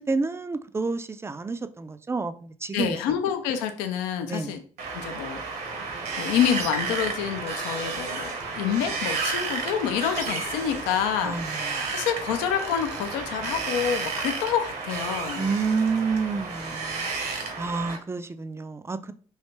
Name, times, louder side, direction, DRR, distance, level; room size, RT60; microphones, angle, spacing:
voice 1, 0.0-3.0 4.3-4.6 11.2-12.0 15.4-19.1, right 4 dB, 15° right, 0.3 m, -29 dB
voice 2, 2.7-4.6 4.9-5.6 6.2-15.4, left 8 dB, 75° left, 0.4 m, -28 dB
Wind, 4.8-18.0, right 4 dB, 65° right, 0.9 m, -32 dB
3.2 x 2.7 x 2.9 m
hypercardioid pair, 45°, 18 cm